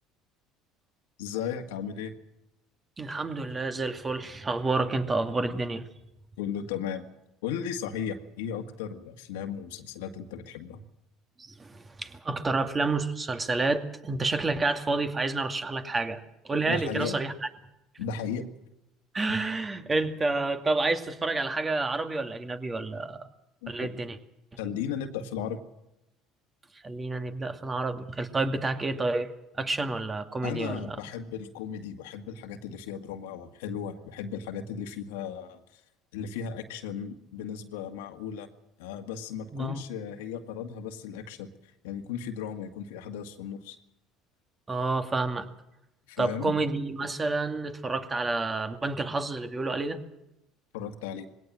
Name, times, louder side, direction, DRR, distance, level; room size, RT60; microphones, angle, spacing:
voice 1, 1.2-2.1 6.4-7.1 7.4-10.8 16.7-17.2 18.0-18.4 23.6-23.9 24.6-25.6 30.4-35.8 36.1-38.5 38.8-41.5 41.8-43.8 46.1-46.5 50.7-51.3, left 8 dB, 85° left, 6 dB, 2.0 m, -36 dB
voice 2, 3.0-5.8 11.4-17.3 19.1-23.3 23.7-24.2 26.8-29.3 29.6-31.0 39.5-39.8 44.7-45.5 46.2-50.0, right 3 dB, 25° right, 7 dB, 2.4 m, -29 dB
20.5 x 17.5 x 7.6 m, 0.88 s
supercardioid pair, 85°, 0 cm